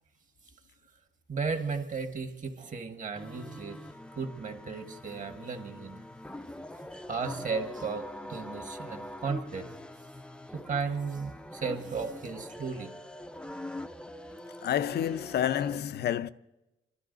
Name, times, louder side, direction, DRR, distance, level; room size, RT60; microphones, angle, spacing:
voice 1, 1.3-3.8 4.1-6.0 7.1-9.7 10.5-12.9, right 5 dB, 40° right, 1.6 m, -35 dB
sound 1, 3.1-15.8, left 1 dB, 5° left, 0.5 m, -44 dB
voice 2, 14.6-16.3, left 10 dB, 55° left, 0.5 m, -29 dB
28.5 x 12.5 x 3.9 m
cardioid pair, 90°, 20 cm